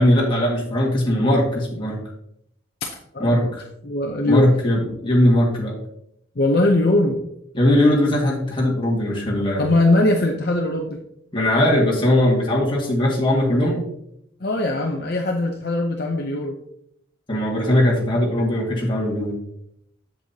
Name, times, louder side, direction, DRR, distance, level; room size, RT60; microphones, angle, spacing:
voice 1, 0.0-2.0 3.2-3.5 4.3-5.8 7.5-9.7 11.3-13.8 17.3-19.4, left 1 dB, 25° left, -3 dB, 1.8 m, -19 dB
voice 2, 2.8-3.4 3.8-4.5 6.4-7.2 9.6-11.0 14.4-16.5, left 2 dB, 50° left, 2 dB, 0.7 m, -20 dB
7.6 x 7.5 x 2.8 m, 0.74 s
head